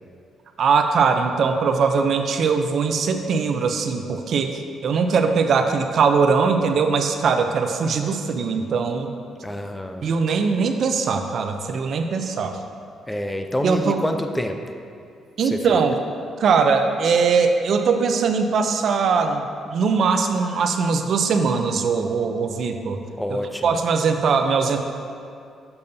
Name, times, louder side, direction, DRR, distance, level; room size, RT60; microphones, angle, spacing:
voice 1, 0.6-9.1 10.0-12.6 13.6-14.0 15.4-16.0 16.4-23.0 23.3-24.8, right 5 dB, 60° right, 6 dB, 0.4 m, -21 dB
voice 2, 9.4-10.1 13.1-14.6 15.4-15.8 23.2-23.8, left 1 dB, 10° left, 5 dB, 0.4 m, -27 dB
6.8 x 6.8 x 2.7 m, 2.4 s
cardioid pair, 90°, 0 cm